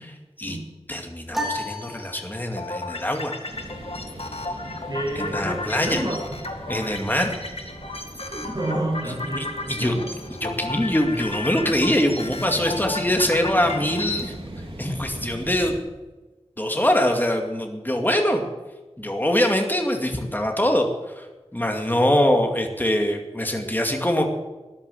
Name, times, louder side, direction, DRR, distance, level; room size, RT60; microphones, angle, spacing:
voice 1, 0.9-3.4 5.2-6.0 6.7-7.3 9.0-9.9 10.4-14.4 14.8-15.8 16.6-18.5 19.0-20.9 21.2-21.3 21.5-24.3, left 1 dB, 20° left, 3 dB, 2.3 m, -23 dB
sound 1, 1.3-2.8, equal, 5° right, 3.0 m, -32 dB
sound 2, 2.6-14.3, left 2 dB, 70° left, 2.1 m, -34 dB
sound 3, 3.5-15.8, right 1 dB, 60° right, 3.7 m, -39 dB
voice 2, 4.6-6.4 8.3-10.1, right 1 dB, 40° right, 0 dB, 5.7 m, -30 dB
14.0 x 10.5 x 7.9 m, 1.2 s
wide cardioid pair, 60°, 11 cm